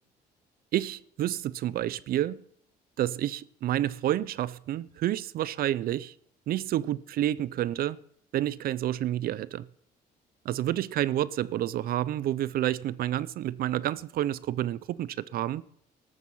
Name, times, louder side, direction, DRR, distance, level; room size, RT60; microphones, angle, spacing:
voice 1, 0.7-2.4 3.0-6.1 6.5-8.0 8.3-9.7 10.5-15.6, right 13 dB, 60° right, 0.5 m, -29 dB
13.5 x 12.5 x 5.6 m
cardioid pair, 110°, 17 cm